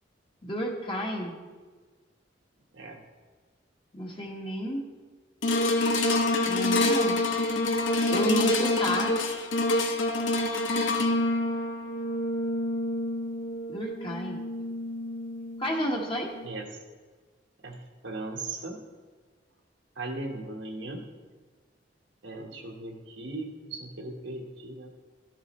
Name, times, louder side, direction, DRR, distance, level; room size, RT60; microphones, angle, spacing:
voice 1, 0.4-1.4 3.9-4.8 6.5-7.2 8.1-9.1 13.7-14.4 15.6-16.3, equal, 30° left, 0 dB, 1.4 m, -31 dB
sound 1, 5.4-15.8 16.4-16.5, left 2 dB, 90° left, 0.8 m, -27 dB
voice 2, 17.6-18.8 20.0-21.0 22.2-24.9, right 2 dB, 80° right, 1 dB, 1.4 m, -38 dB
13.0 x 7.4 x 3.1 m, 1.4 s
head